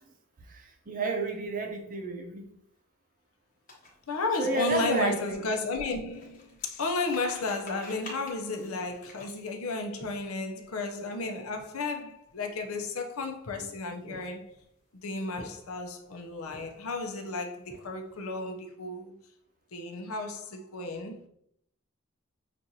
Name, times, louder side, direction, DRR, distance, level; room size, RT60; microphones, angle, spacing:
voice 1, 0.5-2.5 4.4-5.4, right 2 dB, 40° right, 0.6 m, -31 dB
sound 1, 3.7-10.6 11.1-11.3 11.5-11.8 12.4-13.2 13.9-14.6 15.1-15.9 16.4-17.0 17.3-18.2, left 1 dB, 40° left, 1.2 m, -49 dB
voice 2, 4.1-14.5 14.9-19.1 19.7-21.3, left 3 dB, 90° left, 0.7 m, -33 dB
6.1 x 2.5 x 2.8 m
head